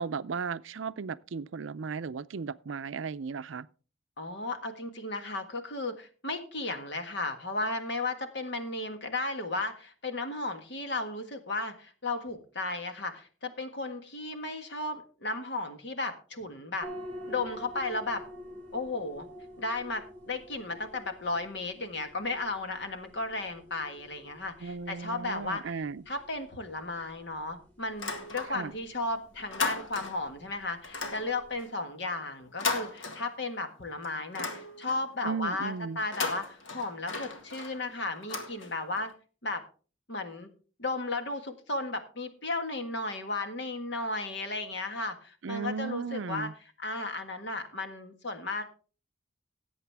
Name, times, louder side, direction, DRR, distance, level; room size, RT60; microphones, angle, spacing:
voice 1, 0.0-3.7 24.6-26.0 28.5-28.7 35.2-36.0 45.4-46.5, right 5 dB, 70° right, 0.5 m, -35 dB
voice 2, 4.2-16.9 17.3-18.2 18.7-19.3 19.6-39.1 39.4-39.6 40.1-40.5 40.8-46.5 46.8-48.6, left 2 dB, 55° left, 1.6 m, -34 dB
sound 1, 16.8-31.6, equal, 10° left, 3.8 m, -49 dB
sound 2, 27.9-28.9 29.2-30.3 30.8-33.7 34.0-35.2 36.0-39.1, left 4 dB, 75° left, 1.9 m, -37 dB
17.0 x 8.1 x 3.5 m
head